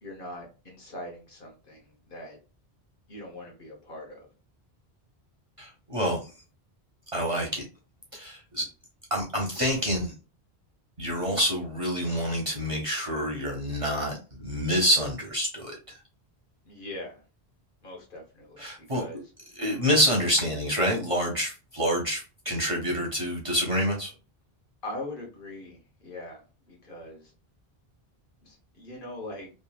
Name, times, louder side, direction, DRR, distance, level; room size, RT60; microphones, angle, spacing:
voice 1, 0.0-2.4 3.1-4.3 16.6-17.2 17.8-19.3 24.8-27.3 28.4-29.5, left 1 dB, 55° left, 0 dB, 1.1 m, -41 dB
voice 2, 5.6-6.2 7.1-7.6 8.1-8.7 9.1-10.1 11.0-16.0 18.6-19.0 19.6-24.1, equal, 40° right, -1 dB, 0.6 m, -27 dB
3.0 x 2.3 x 2.3 m, 0.34 s
omnidirectional pair, 1.1 m